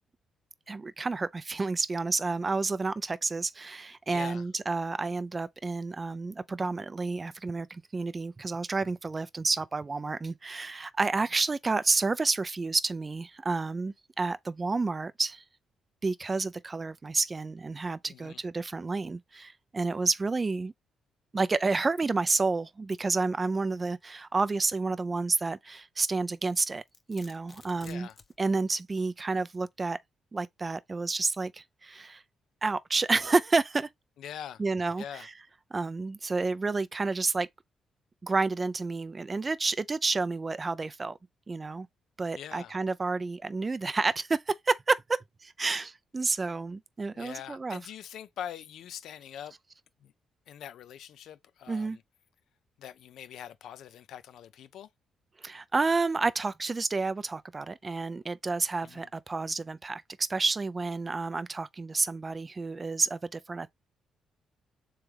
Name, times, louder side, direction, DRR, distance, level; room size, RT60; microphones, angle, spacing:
voice 1, 0.7-15.4 16.0-20.7 21.3-26.8 27.1-28.1 28.4-30.0 30.3-32.2 32.6-33.9 34.6-35.3 35.7-37.5 38.2-41.2 41.5-41.9 42.2-47.8 51.7-52.0 55.4-63.7, right 3 dB, 25° right, 0.4 m, -30 dB
voice 2, 4.1-4.5 18.1-18.4 27.8-28.2 34.2-34.6 35.0-35.3 42.3-42.7 47.1-49.5 50.0-50.1 50.5-52.0 52.8-54.9 58.8-59.1, left 9 dB, 75° left, 0.5 m, -43 dB
Domestic sounds home sounds, 26.5-28.4, left 4 dB, 35° left, 0.6 m, -54 dB
3.5 x 3.2 x 3.3 m
cardioid pair, 90°, 0 cm